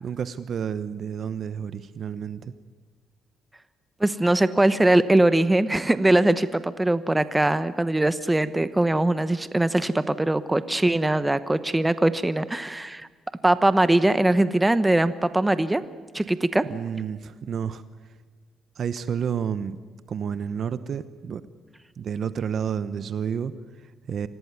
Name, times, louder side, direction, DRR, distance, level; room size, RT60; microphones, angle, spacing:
voice 1, 0.0-2.5 16.7-18.1 18.8-19.8 20.1-21.4 22.0-24.3, right 7 dB, 55° right, 13 dB, 0.9 m, -30 dB
voice 2, 4.0-13.1 13.4-15.8 16.1-16.7, right 1 dB, 10° right, 13 dB, 1.0 m, -21 dB
25.5 x 17.5 x 9.5 m, 1.4 s
cardioid pair, 90°, 0 cm